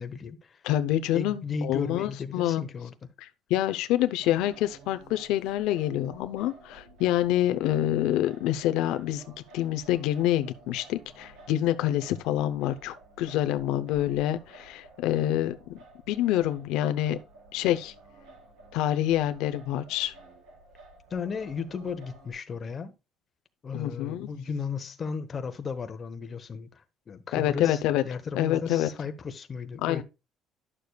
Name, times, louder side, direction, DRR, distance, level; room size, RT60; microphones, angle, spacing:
voice 1, 0.0-0.6 1.1-3.1 21.1-22.9 23.6-30.0, left 5 dB, 30° left, 1.1 m, -35 dB
voice 2, 0.6-2.6 3.2-9.2 9.5-15.6 16.1-17.2 17.5-17.9 18.7-20.1 23.7-24.3 27.3-28.0 28.3-28.9 29.8-30.0, left 13 dB, 85° left, 0.7 m, -27 dB
Singing, 4.2-22.3, right 2 dB, 85° right, 4.5 m, -52 dB
11.0 x 6.7 x 2.3 m
cardioid pair, 140°, 0 cm